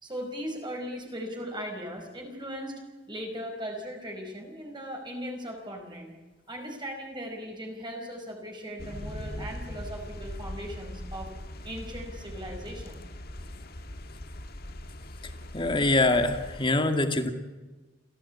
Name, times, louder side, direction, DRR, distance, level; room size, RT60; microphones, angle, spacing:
voice 1, 0.0-2.8 3.1-6.1 6.5-11.3 11.6-13.0, equal, 25° right, 1 dB, 5.1 m, -38 dB
sound 1, 8.8-16.7, left 1 dB, 55° left, 1.9 m, -40 dB
voice 2, 15.5-17.3, left 2 dB, 30° left, 7 dB, 2.2 m, -24 dB
28.5 x 16.0 x 8.6 m, 1.2 s
head